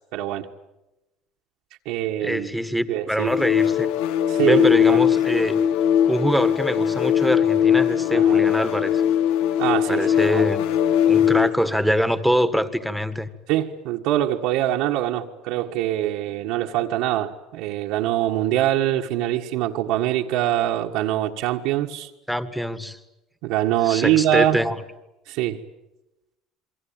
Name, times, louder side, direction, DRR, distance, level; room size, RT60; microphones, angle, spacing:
voice 1, 0.1-0.5 1.9-2.5 2.9-3.3 4.3-5.0 8.1-8.4 9.6-10.4 11.4-11.5 13.5-22.1 23.4-24.6 25.3-25.6, right 13 dB, 75° right, 1.7 m, -24 dB
voice 2, 2.2-3.9 4.4-5.6 6.1-9.0 9.9-10.7 11.1-13.3 22.3-23.0 23.8-24.8, equal, ahead, 1.7 m, -24 dB
sound 1, 3.2-11.6, left 9 dB, 80° left, 1.3 m, -20 dB
28.0 x 23.5 x 8.9 m
cardioid pair, 125°, 0 cm